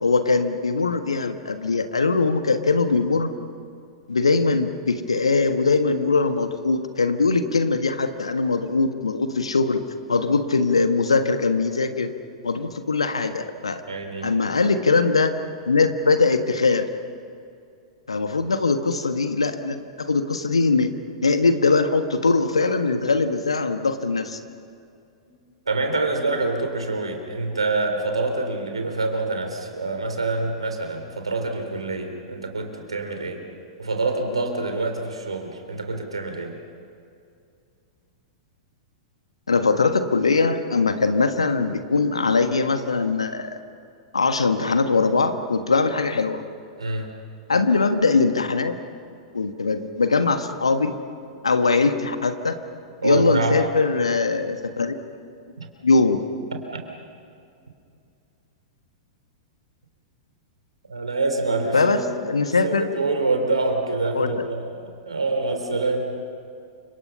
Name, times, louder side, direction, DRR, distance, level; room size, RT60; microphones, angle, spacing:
voice 1, 0.0-3.3 4.1-9.8 10.1-12.1 12.4-13.8 14.2-15.3 15.7-16.9 18.1-20.9 21.2-24.4 39.5-43.6 44.1-46.4 47.5-48.8 49.3-51.0 51.4-52.6 53.0-55.0 55.8-56.2 61.7-62.9 64.1-64.4, left 4 dB, 75° left, 8 dB, 1.6 m, -21 dB
voice 2, 13.9-14.3 25.7-33.4 33.8-36.6 46.8-47.1 53.0-53.6 55.6-55.7 56.7-56.8 60.9-62.1 62.4-66.1, right 3 dB, 80° right, 4 dB, 3.6 m, -26 dB
29.5 x 26.5 x 5.6 m, 2.4 s
figure-of-eight pair, 100°, 3 cm